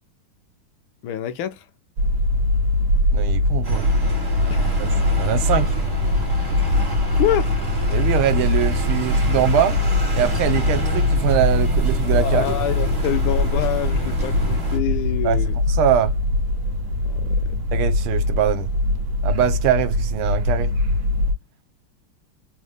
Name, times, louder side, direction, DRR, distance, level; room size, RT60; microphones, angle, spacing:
voice 1, 1.0-1.6 4.5-4.7 7.1-7.5 12.2-15.5 17.0-17.4, left 11 dB, 75° left, 1.4 m, -26 dB
sound 1, 2.0-21.3, left 2 dB, 65° right, 0.7 m, -22 dB
voice 2, 3.1-3.8 4.8-4.9 5.2-5.7 7.9-9.8 10.1-12.6 15.2-16.1 17.7-18.7 19.2-20.7, right 10 dB, 80° right, 1.5 m, -22 dB
sound 2, 3.6-14.8, right 1 dB, 30° right, 0.4 m, -31 dB
sound 3, 4.9-14.6, equal, 45° left, 0.6 m, -33 dB
4.0 x 2.1 x 3.2 m
omnidirectional pair, 2.4 m